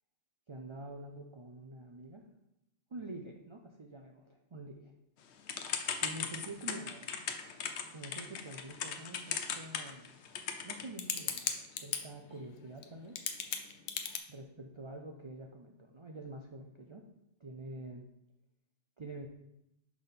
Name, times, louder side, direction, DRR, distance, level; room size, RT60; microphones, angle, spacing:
voice 1, 0.5-2.2 2.9-4.9 6.0-7.1 7.9-10.2 10.6-13.2 14.3-17.1 17.4-18.0 19.0-19.3, right 2 dB, 40° right, 2 dB, 0.4 m, -47 dB
Typing / Telephone, 5.5-12.0 12.8-12.9 13.2-14.2, left 7 dB, 70° left, 0.9 m, -36 dB
6.0 x 3.5 x 5.7 m, 0.83 s
omnidirectional pair, 1.2 m